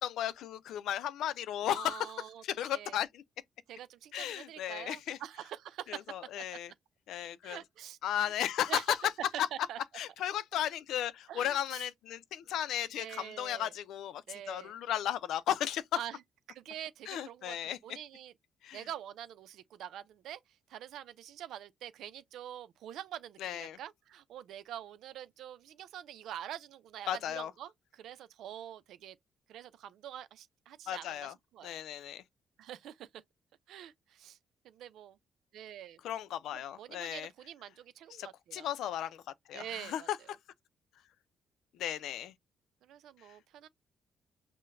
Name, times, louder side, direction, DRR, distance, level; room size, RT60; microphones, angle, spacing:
voice 1, 0.0-2.1 2.4-3.2 4.1-5.2 5.9-6.7 7.1-7.6 8.0-8.8 9.4-9.5 9.9-14.2 14.5-15.8 17.1-17.8 18.6-18.8 23.4-23.8 27.1-27.5 30.9-31.3 31.6-32.2 36.0-37.3 38.2-38.3 38.5-39.2 39.5-40.2 41.8-42.3, left 11 dB, 80° left, 0.5 m, -35 dB
voice 2, 1.6-2.4 2.7-3.0 3.7-6.0 7.4-8.3 8.7-9.1 9.5-9.8 11.3-11.9 13.0-13.7 14.3-14.8 15.9-16.2 16.5-17.6 17.8-18.3 18.7-29.2 29.5-31.7 32.6-33.2 33.7-34.4 34.6-35.2 35.5-36.0 36.5-38.7 39.5-40.3 42.8-43.7, right 11 dB, 80° right, 0.5 m, -46 dB
5.7 x 2.2 x 2.6 m
cardioid pair, 90°, 0 cm